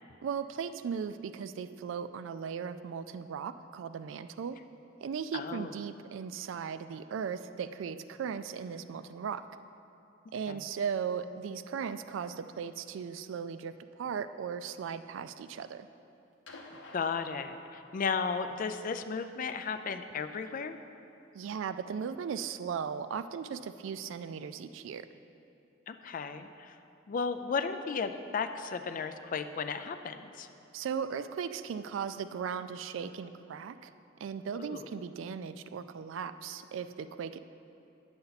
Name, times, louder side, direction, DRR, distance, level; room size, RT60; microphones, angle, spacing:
voice 1, 0.2-4.6 5.0-9.4 10.3-15.9 21.3-25.1 30.7-33.9 34.2-37.4, right 7 dB, 75° right, 12 dB, 0.3 m, -37 dB
voice 2, 5.3-5.7 10.5-10.6 16.9-20.8 25.9-26.7 27.1-30.5 34.6-34.9, left 5 dB, 45° left, 9 dB, 0.4 m, -34 dB
sound 1, 16.5-18.1 19.4-19.5, left 2 dB, 70° left, 0.8 m, -51 dB
9.6 x 6.9 x 4.0 m, 2.7 s
head